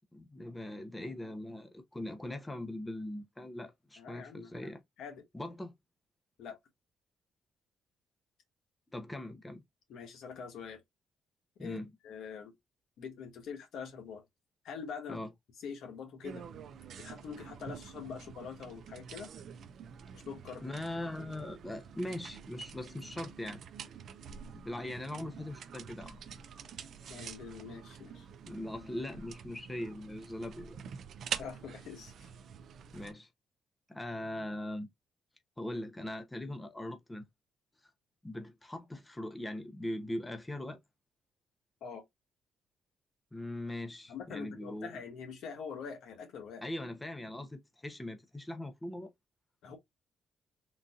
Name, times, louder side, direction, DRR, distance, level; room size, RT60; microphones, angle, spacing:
voice 1, 0.1-4.8 5.3-5.7 8.9-9.6 11.6-11.9 15.1-15.3 20.6-23.6 24.5-26.2 28.4-30.8 32.9-33.3 33.9-34.9 35.6-37.3 38.2-40.8 43.3-44.9 46.6-49.1, left 1 dB, 10° left, 0.8 m, -40 dB
voice 2, 4.0-4.5 5.0-5.2 6.4-6.6 9.9-10.8 11.6-11.8 12.0-12.5 13.0-14.2 14.6-15.2 15.6-16.4 17.0-19.3 20.1-20.7 27.1-28.3 31.4-32.3 41.8-42.0 44.1-46.6 49.6-49.8, left 6 dB, 80° left, 1.2 m, -44 dB
sound 1, 16.2-33.1, right 7 dB, 65° right, 0.5 m, -47 dB
3.8 x 2.7 x 2.4 m
cardioid pair, 90°, 0 cm